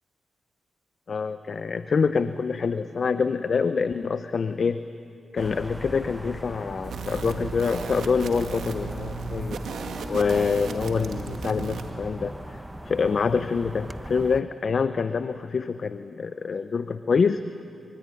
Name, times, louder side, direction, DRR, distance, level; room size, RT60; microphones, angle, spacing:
voice 1, 1.1-4.8 5.3-9.6 10.1-17.4, left 5 dB, 60° left, 11 dB, 0.8 m, -26 dB
sound 1, 5.4-14.4, right 1 dB, 10° right, 1.1 m, -39 dB
sound 2, 6.8-11.9, right 4 dB, 85° right, 2.2 m, -35 dB
25.0 x 24.0 x 10.0 m, 2.8 s
cardioid pair, 55°, 0 cm